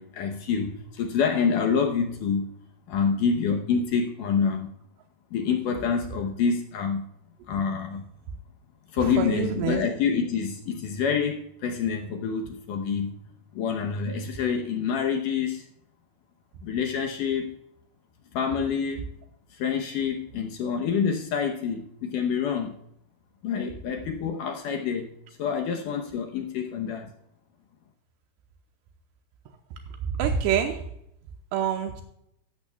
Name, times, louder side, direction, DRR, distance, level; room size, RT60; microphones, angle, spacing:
voice 1, 0.0-2.5 2.9-4.7 5.3-7.1 7.5-8.1 8.9-13.2 13.5-15.7 16.6-17.5 18.3-19.0 19.5-22.8 23.4-25.1 25.4-27.1, left 6 dB, 75° left, 3 dB, 1.9 m, -27 dB
voice 2, 9.2-9.8 30.2-30.7 31.5-32.0, right 8 dB, 85° right, 4 dB, 2.9 m, -25 dB
15.5 x 12.0 x 2.3 m, 0.75 s
omnidirectional pair, 4.9 m